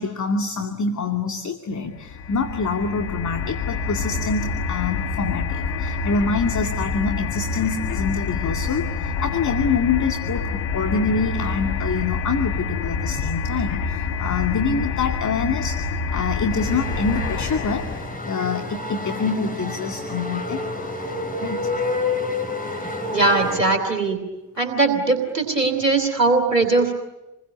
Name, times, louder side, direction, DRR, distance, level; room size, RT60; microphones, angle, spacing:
voice 1, 0.0-20.9 21.4-21.7, left 4 dB, 35° left, 5 dB, 2.4 m, -26 dB
sound 1, 2.0-18.2, left 4 dB, 65° left, 1.9 m, -27 dB
sound 2, 16.5-23.6, left 2 dB, 15° left, 7.2 m, -29 dB
voice 2, 22.8-24.2 24.6-26.9, right 3 dB, 85° right, 4 dB, 2.9 m, -20 dB
28.5 x 21.5 x 9.5 m, 1.0 s
figure-of-eight pair, 40°, 47 cm